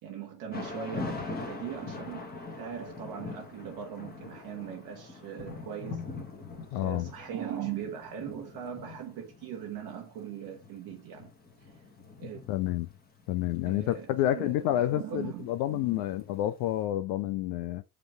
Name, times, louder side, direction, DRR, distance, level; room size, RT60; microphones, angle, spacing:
voice 1, 0.0-6.1 6.7-11.3 11.6-11.7 12.2-12.4 13.6-16.2, right 9 dB, 50° right, 1.2 m, -40 dB
Thunder / Rain, 0.5-16.5, left 3 dB, 20° left, 1.6 m, -43 dB
voice 2, 6.7-7.1 12.2-12.9 13.3-17.8, left 14 dB, 50° left, 0.6 m, -29 dB
5.1 x 3.0 x 3.3 m
hypercardioid pair, 80°, 49 cm